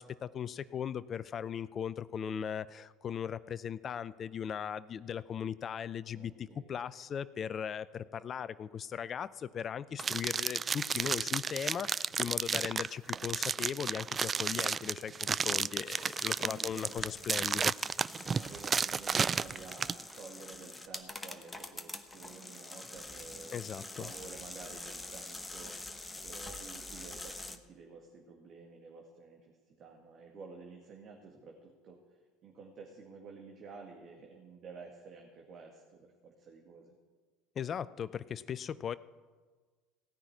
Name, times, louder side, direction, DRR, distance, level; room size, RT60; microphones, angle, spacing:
voice 1, 0.0-17.7 23.5-24.1 37.6-39.0, left 8 dB, 40° left, 17 dB, 0.4 m, -38 dB
voice 2, 6.1-6.7 13.1-13.3 15.6-15.7 16.4-17.1 18.2-36.9, right 4 dB, 45° right, 0 dB, 1.9 m, -51 dB
Open plastic packaging, 10.0-20.0, right 6 dB, 30° right, 0.3 m, -32 dB
sound 1, 15.6-27.6, left 2 dB, 15° left, 1.2 m, -46 dB
17.0 x 5.9 x 9.5 m, 1.4 s
hypercardioid pair, 70°, 0 cm